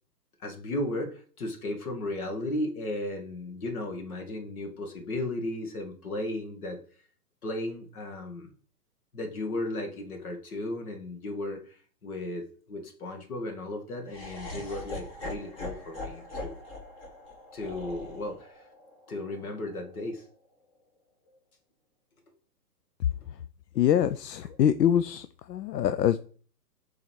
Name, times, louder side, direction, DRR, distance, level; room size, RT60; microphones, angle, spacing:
voice 1, 0.4-6.8 7.4-8.5 9.1-16.6 17.5-18.7 19.1-20.2 24.4-24.6, left 1 dB, 60° left, 5 dB, 2.1 m, -35 dB
Laughter, 14.1-20.2, left 1 dB, 20° left, 1.1 m, -41 dB
voice 2, 23.8-26.2, left 10 dB, 85° left, 12 dB, 0.6 m, -24 dB
6.9 x 4.0 x 4.6 m, 0.43 s
hypercardioid pair, 160°, 48 cm